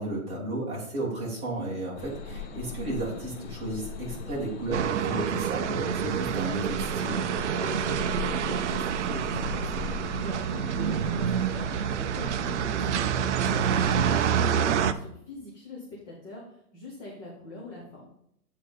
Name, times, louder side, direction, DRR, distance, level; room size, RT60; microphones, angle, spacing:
voice 1, 0.0-7.2 13.4-13.8, right 2 dB, 15° right, -6 dB, 2.2 m, -33 dB
sound 1, 2.0-14.4, left 5 dB, 45° left, 1.1 m, -40 dB
sound 2, 4.7-14.9, right 8 dB, 55° right, 0.5 m, -27 dB
voice 2, 7.6-12.9 13.2-18.1, left 2 dB, 10° left, -5 dB, 0.6 m, -41 dB
8.7 x 3.8 x 5.3 m, 0.70 s
hypercardioid pair, 165°, 44 cm